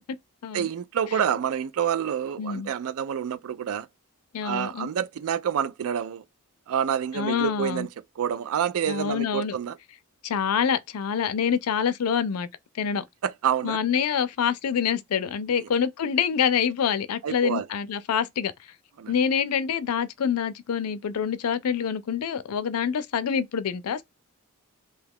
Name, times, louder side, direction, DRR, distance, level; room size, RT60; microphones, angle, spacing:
voice 1, 0.5-3.9 4.4-6.2 6.7-7.9 8.2-9.8 13.2-13.8 15.6-15.7 17.2-17.7 19.0-19.1, right 8 dB, 70° right, 0.4 m, -28 dB
voice 2, 2.4-2.7 4.3-4.9 7.1-7.9 8.9-9.6 10.2-12.5 12.7-13.0 13.6-18.5 19.1-24.0, left 7 dB, 85° left, 0.4 m, -26 dB
2.7 x 2.3 x 3.5 m
head